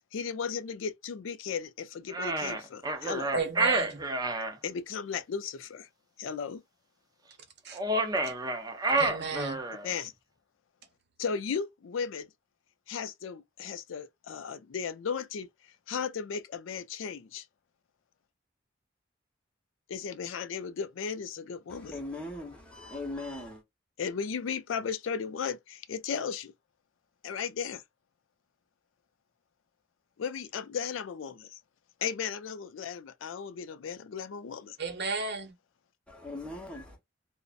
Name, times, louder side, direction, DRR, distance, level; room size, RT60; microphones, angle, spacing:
voice 1, 0.1-3.3 4.6-5.9 6.2-6.6 9.8-10.1 11.2-12.3 12.9-15.5 15.9-17.4 19.9-22.0 24.0-26.5 27.2-27.8 30.2-31.6 32.0-34.8, left 6 dB, 80° left, 0.4 m, -35 dB
sound 1, 2.1-4.5 7.7-9.9, right 2 dB, 20° right, 0.5 m, -29 dB
voice 2, 3.3-4.0 7.6-7.8 8.2-8.3 9.0-9.6 34.8-35.5, right 4 dB, 60° right, 0.9 m, -33 dB
voice 3, 21.8-23.6 36.1-36.9, left 2 dB, 5° left, 0.9 m, -39 dB
2.5 x 2.1 x 2.4 m
head